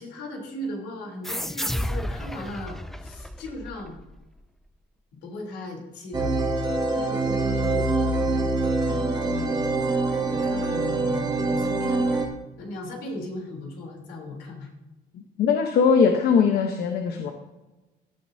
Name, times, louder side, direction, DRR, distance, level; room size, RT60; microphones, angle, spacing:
voice 1, 0.0-4.0 5.2-6.3 6.9-8.4 8.8-12.2 12.6-14.7, left 1 dB, 85° left, 0 dB, 3.6 m, -37 dB
sound 1, 1.2-4.5, equal, ahead, 0.4 m, -32 dB
sound 2, 6.1-12.2, right 2 dB, 25° right, 2.0 m, -24 dB
voice 2, 15.1-17.3, left 6 dB, 70° left, 4 dB, 1.1 m, -21 dB
16.5 x 9.6 x 2.8 m, 1.1 s
cardioid pair, 110°, 17 cm